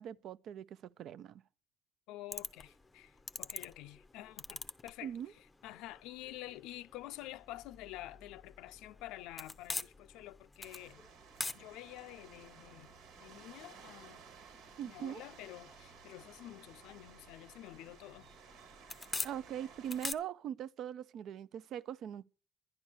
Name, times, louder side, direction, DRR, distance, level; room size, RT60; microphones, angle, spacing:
voice 1, 0.0-1.4 5.0-5.3 14.8-15.2 19.2-22.2, right 10 dB, 60° right, 0.5 m, -41 dB
voice 2, 2.1-11.1 11.5-14.2 14.8-18.3, left 15 dB, 90° left, 0.5 m, -49 dB
sound 1, 2.3-20.1, left 3 dB, 15° left, 0.6 m, -47 dB
sound 2, 10.6-20.1, right 6 dB, 85° right, 1.8 m, -56 dB
11.0 x 10.5 x 6.3 m
cardioid pair, 135°, 0 cm